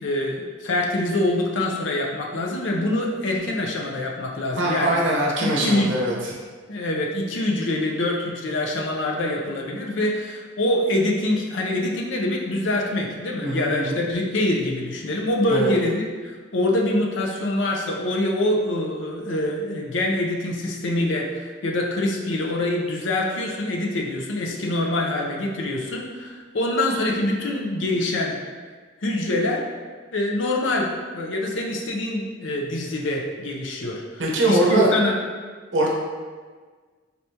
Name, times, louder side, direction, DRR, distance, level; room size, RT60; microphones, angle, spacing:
voice 1, 0.0-5.0 5.4-5.9 6.7-28.4 29.0-29.6 30.1-34.0 34.5-35.1, left 1 dB, 70° left, 0 dB, 0.6 m, -25 dB
voice 2, 4.6-6.3 13.4-14.0 15.5-15.7 34.2-34.9 35.7-35.9, right 1 dB, 65° right, -3 dB, 0.9 m, -22 dB
4.1 x 3.4 x 2.8 m, 1.5 s
head